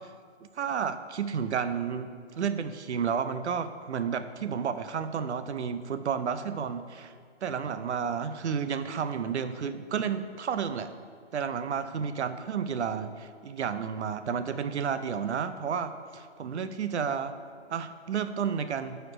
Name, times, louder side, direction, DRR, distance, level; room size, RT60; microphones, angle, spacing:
voice 1, 0.4-7.1 7.4-10.9 11.3-17.3 17.7-19.0, right 7 dB, 70° right, 11 dB, 0.6 m, -31 dB
6.7 x 4.5 x 4.9 m, 2.1 s
hypercardioid pair, 160°, 35 cm